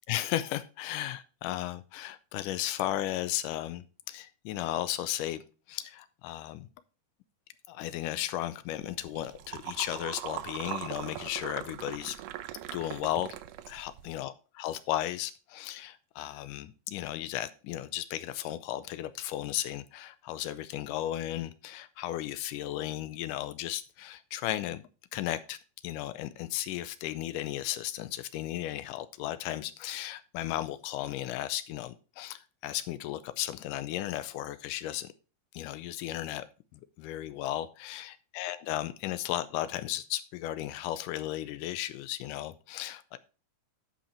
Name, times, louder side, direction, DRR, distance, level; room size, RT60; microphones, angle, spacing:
voice 1, 0.1-5.4 5.7-6.7 7.7-12.2 12.7-13.4 13.7-24.8 25.1-25.6 25.8-35.1 35.5-36.5 36.7-43.2, left 13 dB, 80° left, 13 dB, 2.1 m, -35 dB
sound 1, 8.8-14.1, right 13 dB, 80° right, 2.2 m, -41 dB
9.9 x 5.7 x 4.3 m, 0.34 s
omnidirectional pair, 3.8 m